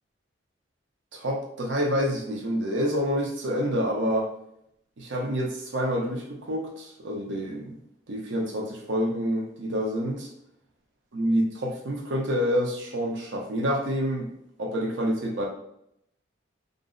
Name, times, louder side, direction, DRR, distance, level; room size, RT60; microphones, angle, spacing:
voice 1, 1.1-4.3 5.0-7.8 8.1-10.3 11.1-14.3 14.6-15.4, equal, 80° right, 0 dB, 0.6 m, -27 dB
2.5 x 2.0 x 3.7 m, 0.75 s
head